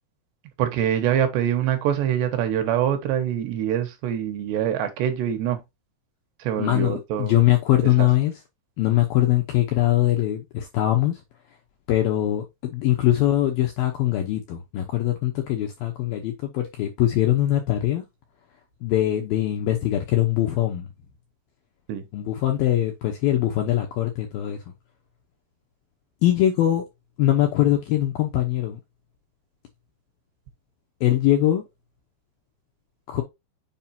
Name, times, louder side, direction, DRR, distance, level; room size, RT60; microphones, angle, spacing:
voice 1, 0.6-5.6 6.4-7.4 8.0-8.1 21.9-22.0, right 10 dB, 75° right, 3.0 m, -24 dB
voice 2, 6.6-8.3 8.8-11.2 11.9-18.0 18.8-20.9 22.1-24.6 26.2-26.8 27.2-28.8 31.0-31.6 33.1-33.2, left 13 dB, 75° left, 2.2 m, -22 dB
7.4 x 5.0 x 2.8 m
omnidirectional pair, 5.4 m